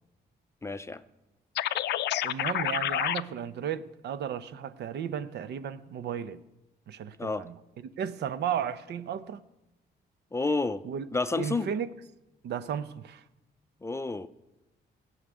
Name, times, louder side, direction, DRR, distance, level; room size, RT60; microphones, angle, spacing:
voice 1, 0.6-1.0 7.2-7.4 10.3-10.8 11.1-11.7 13.8-14.3, left 3 dB, 15° left, 0.5 m, -30 dB
sound 1, 1.5-3.2, left 13 dB, 75° left, 0.5 m, -28 dB
voice 2, 2.2-6.4 6.9-7.6 7.8-9.4 10.8-11.0 11.4-11.9 12.4-13.2, right 8 dB, 70° right, 0.8 m, -34 dB
16.0 x 6.5 x 9.4 m
cardioid pair, 120°, 18 cm